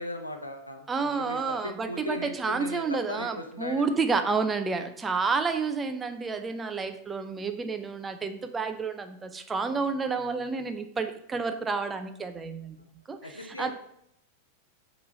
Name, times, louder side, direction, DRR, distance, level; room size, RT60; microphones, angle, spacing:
voice 1, 0.0-3.9 13.2-13.7, left 1 dB, 85° left, 5 dB, 0.7 m, -38 dB
voice 2, 0.9-12.8 13.1-13.7, right 4 dB, 15° right, 9 dB, 0.5 m, -30 dB
5.9 x 3.1 x 5.2 m, 0.74 s
figure-of-eight pair, 90°, 0 cm